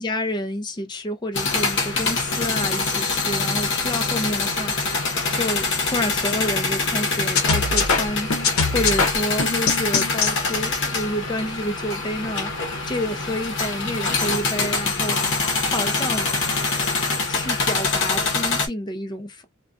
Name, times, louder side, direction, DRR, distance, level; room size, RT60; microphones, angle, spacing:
voice 1, 0.0-16.3 17.3-19.4, equal, 20° left, 0.5 m, -29 dB
sound 1, 1.3-18.7, left 3 dB, 60° left, 0.8 m, -24 dB
sound 2, 7.3-10.3, left 4 dB, 90° left, 0.7 m, -22 dB
2.5 x 2.2 x 2.3 m
head